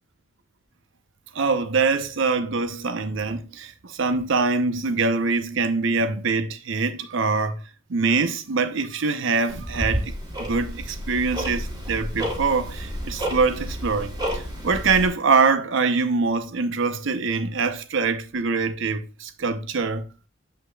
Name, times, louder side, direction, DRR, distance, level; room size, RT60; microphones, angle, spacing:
voice 1, 1.3-7.6 7.9-10.1 10.4-20.0, right 4 dB, 65° right, 0.7 m, -24 dB
Tick-tock, 9.5-15.1, equal, 20° right, 2.9 m, -30 dB
7.9 x 5.7 x 2.3 m
head